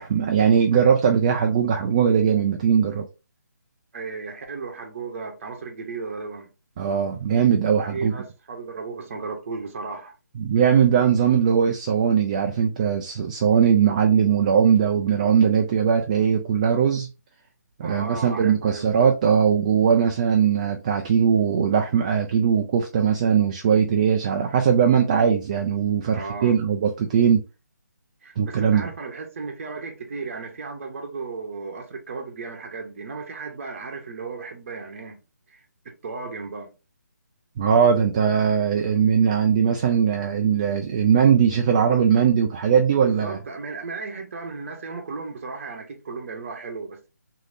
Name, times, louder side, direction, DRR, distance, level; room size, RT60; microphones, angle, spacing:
voice 1, 0.0-3.1 6.8-8.1 10.4-17.1 17.8-27.4 28.4-28.9 37.6-43.4, right 7 dB, 25° right, 0.3 m, -20 dB
voice 2, 3.9-6.5 7.9-10.1 17.8-18.9 26.1-26.5 28.2-35.2 35.5-36.7 43.0-47.1, right 4 dB, 45° right, 0.8 m, -35 dB
3.2 x 2.7 x 2.6 m
figure-of-eight pair, 155°, 10 cm